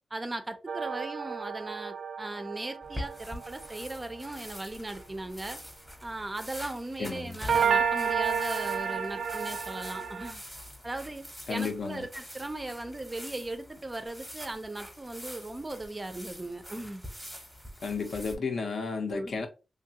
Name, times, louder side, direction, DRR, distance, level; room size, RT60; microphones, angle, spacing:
voice 1, 0.1-5.6 6.0-10.4 10.8-11.2 11.5-17.0 19.1-19.4, right 2 dB, 20° right, 0.4 m, -38 dB
sound 1, 0.7-4.2 7.5-10.3, right 6 dB, 85° right, 0.4 m, -31 dB
sound 2, 2.8-18.4, equal, ahead, 0.7 m, -45 dB
voice 2, 7.0-7.4 11.5-12.1 17.8-19.5, left 4 dB, 70° left, 0.6 m, -33 dB
3.1 x 2.3 x 2.8 m
wide cardioid pair, 165°, 0 cm